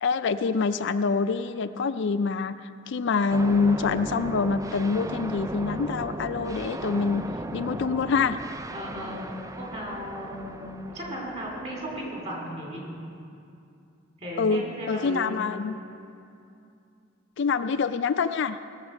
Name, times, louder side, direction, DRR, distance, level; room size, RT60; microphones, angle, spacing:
voice 1, 0.0-7.2 7.5-8.4 14.4-15.8 17.4-18.6, left 5 dB, 60° left, 10 dB, 0.4 m, -26 dB
sound 1, 3.3-12.4, right 2 dB, 15° right, 0.4 m, -37 dB
voice 2, 8.7-9.2 9.5-12.8 14.2-15.4, equal, 35° right, -2 dB, 3.2 m, -36 dB
19.0 x 7.4 x 6.3 m, 2.5 s
head